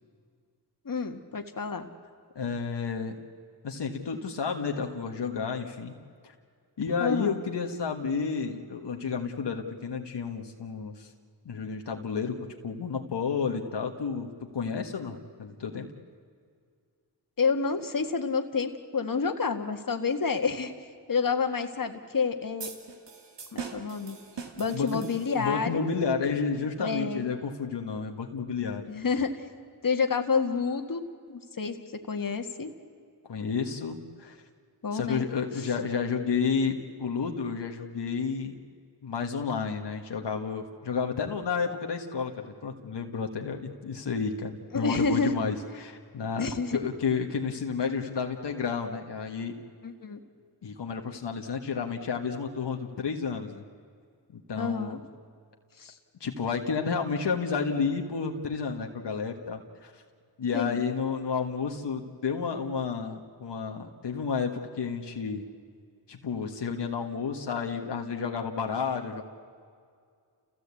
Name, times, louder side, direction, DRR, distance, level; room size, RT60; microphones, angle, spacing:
voice 1, 0.9-1.9 7.0-7.4 17.4-20.7 21.1-22.7 23.5-24.2 24.6-25.9 26.8-27.3 28.9-29.4 29.8-31.8 32.1-32.7 34.8-35.3 44.7-45.4 46.4-46.8 49.8-50.2 54.6-55.0 55.8-55.9 60.5-60.8, left 5 dB, 50° left, 6 dB, 1.8 m, -29 dB
voice 2, 2.3-3.2 3.6-5.9 6.2-6.3 6.8-11.1 11.4-15.9 24.7-25.0 25.4-28.9 33.3-34.4 34.9-38.6 39.0-49.5 50.6-53.6 54.3-55.0 56.2-60.0 60.4-65.4 66.1-69.2, left 5 dB, 80° left, 3 dB, 1.6 m, -31 dB
sound 1, 22.6-25.7, right 5 dB, 90° right, 2.2 m, -42 dB
29.5 x 16.5 x 8.4 m, 2.2 s
cardioid pair, 45°, 42 cm